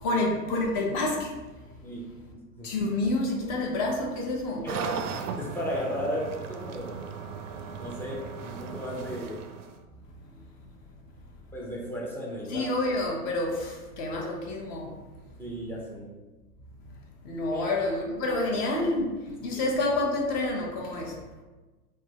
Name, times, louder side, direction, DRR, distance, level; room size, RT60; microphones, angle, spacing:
voice 1, 0.0-1.3 2.6-4.7 12.5-14.9 17.2-21.1, left 2 dB, 40° left, 0 dB, 0.9 m, -28 dB
voice 2, 1.8-2.7 4.6-7.1 7.8-9.5 11.5-12.7 15.4-16.1 17.5-17.7 18.3-18.4 19.5-19.6, equal, 5° left, -3 dB, 0.4 m, -35 dB
sound 1, 4.7-9.8, right 6 dB, 55° right, 0.5 m, -37 dB
3.6 x 2.1 x 3.5 m, 1.2 s
hypercardioid pair, 90°, 46 cm